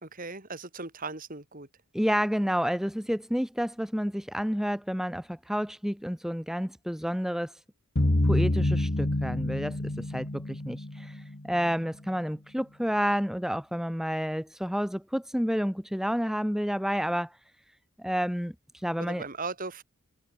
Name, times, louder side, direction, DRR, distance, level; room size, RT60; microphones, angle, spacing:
voice 1, 0.0-1.7 19.0-19.8, right 3 dB, 40° right, 3.0 m, -38 dB
voice 2, 1.9-7.5 8.2-17.4 18.0-19.2, equal, ahead, 1.7 m, -30 dB
sound 1, 8.0-11.7, left 1 dB, 45° left, 1.5 m, -27 dB
head